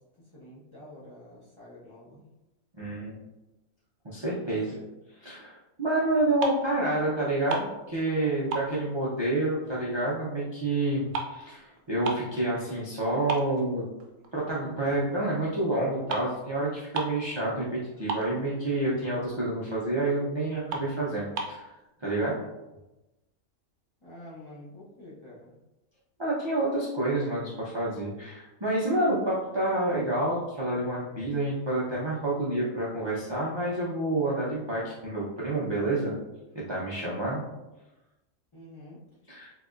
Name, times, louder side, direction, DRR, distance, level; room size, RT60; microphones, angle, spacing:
voice 1, 0.3-2.2 4.3-4.9 8.2-8.7 24.0-25.5 38.5-39.0, left 1 dB, 30° left, -9 dB, 0.6 m, -48 dB
voice 2, 2.7-3.2 4.0-4.7 5.2-13.8 14.3-21.7 22.0-22.4 26.2-36.2 36.5-37.4 39.3-39.5, right 2 dB, 45° right, -8 dB, 0.3 m, -28 dB
sound 1, 6.1-6.8 7.1-8.2 8.5-10.0 10.3-12.4 12.8-12.9 13.3-14.4 14.8-15.0 15.8-15.9 16.1-16.3 16.6-16.7 16.9-17.3 17.6-17.7 17.9-18.7 19.1-19.3 19.7-19.8 20.2-20.3 20.7-21.6, right 4 dB, 80° right, 1.0 m, -35 dB
3.5 x 2.8 x 2.4 m, 1.0 s
omnidirectional pair, 1.5 m